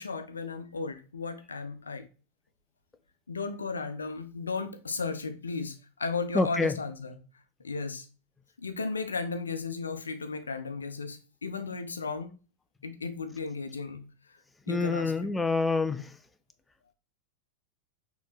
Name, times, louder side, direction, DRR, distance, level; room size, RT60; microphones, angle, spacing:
voice 1, 0.0-2.0 3.3-7.2 7.6-8.1 8.6-12.3 12.8-14.0 14.7-15.3, left 4 dB, 75° left, 0.6 m, -35 dB
voice 2, 6.3-6.7 14.7-16.1, left 3 dB, 10° left, 0.3 m, -27 dB
6.2 x 3.0 x 2.4 m
figure-of-eight pair, 90°, 0 cm